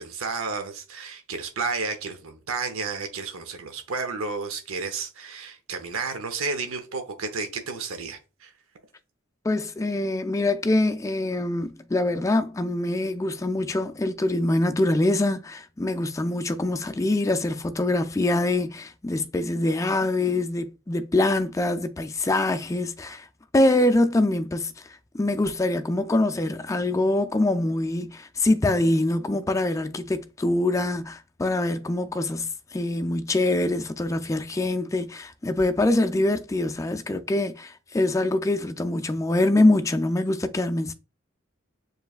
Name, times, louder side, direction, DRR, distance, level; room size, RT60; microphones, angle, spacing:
voice 1, 0.0-8.5, right 4 dB, 90° right, 0.7 m, -32 dB
voice 2, 9.4-23.3 23.5-24.7 25.1-40.9, left 2 dB, 15° left, 0.3 m, -24 dB
7.0 x 3.1 x 2.4 m
head